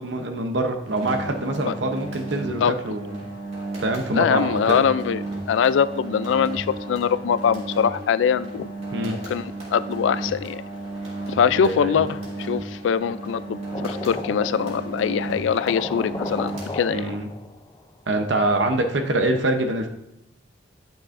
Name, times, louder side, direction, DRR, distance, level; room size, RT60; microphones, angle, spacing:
voice 1, 0.0-3.3 3.8-4.8 8.9-9.2 11.6-12.0 16.9-17.3 18.1-19.9, right 2 dB, 70° right, 5 dB, 0.8 m, -25 dB
sound 1, 0.8-17.3, right 2 dB, 35° right, 2.4 m, -34 dB
voice 2, 4.1-8.7 9.0-10.6 11.4-17.1, left 7 dB, 85° left, 15 dB, 0.3 m, -23 dB
sound 2, 13.7-15.0 15.3-15.4 15.6-17.8, left 3 dB, 20° left, 0.4 m, -34 dB
10.0 x 6.0 x 2.5 m, 0.89 s
head